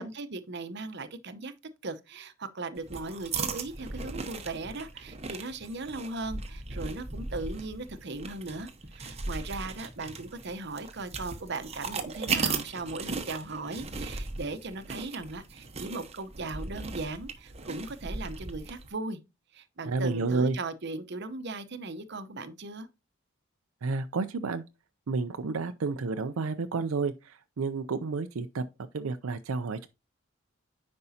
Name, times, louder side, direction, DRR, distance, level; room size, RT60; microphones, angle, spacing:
voice 1, 0.0-1.5 1.8-19.2 19.5-22.9, right 3 dB, 55° right, 0.9 m, -38 dB
sound 1, 2.8-18.9, right 4 dB, 30° right, 0.9 m, -37 dB
voice 2, 19.8-20.6 23.8-24.6 25.1-28.7 28.9-29.9, right 4 dB, 85° right, 0.5 m, -30 dB
9.7 x 5.3 x 2.8 m
head